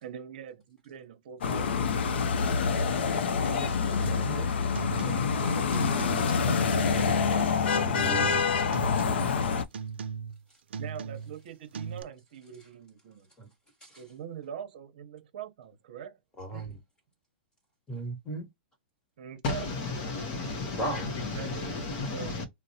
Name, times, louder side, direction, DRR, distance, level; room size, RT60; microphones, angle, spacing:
voice 1, 0.0-2.3 3.4-4.6 4.9-7.5 10.8-13.3 14.0-16.2 16.5-16.7 19.2-19.7 21.3-22.4, right 9 dB, 50° right, 0.8 m, -43 dB
sound 1, 1.4-9.6, left 5 dB, 75° left, 0.5 m, -26 dB
voice 2, 4.0-4.5 7.9-8.4 13.4-13.5 13.8-14.0 16.4-16.8 17.9-18.5 20.7-21.1, right 1 dB, 10° left, 1.1 m, -36 dB
sound 2, 4.0-4.4 4.7-5.4 5.7-6.4 6.7-7.4 7.7-8.4 8.7-9.4 9.7-10.4 10.7-11.4 11.7-12.0, right 6 dB, 90° right, 0.4 m, -38 dB
voice 3, 19.4-22.5, left 3 dB, 30° left, 0.7 m, -33 dB
3.9 x 2.0 x 2.7 m
hypercardioid pair, 165°, 6 cm